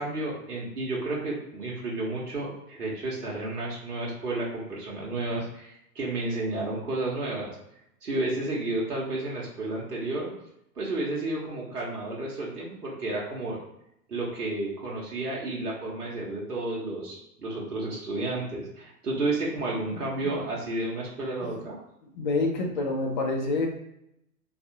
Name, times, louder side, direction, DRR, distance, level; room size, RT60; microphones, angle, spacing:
voice 1, 0.0-7.5 8.0-10.3 10.8-13.6 14.1-21.8, right 2 dB, 75° right, -5 dB, 1.0 m, -31 dB
voice 2, 19.9-20.3 22.1-23.7, left 3 dB, 30° left, 1 dB, 0.5 m, -28 dB
3.4 x 2.4 x 2.7 m, 0.79 s
figure-of-eight pair, 105°, 47 cm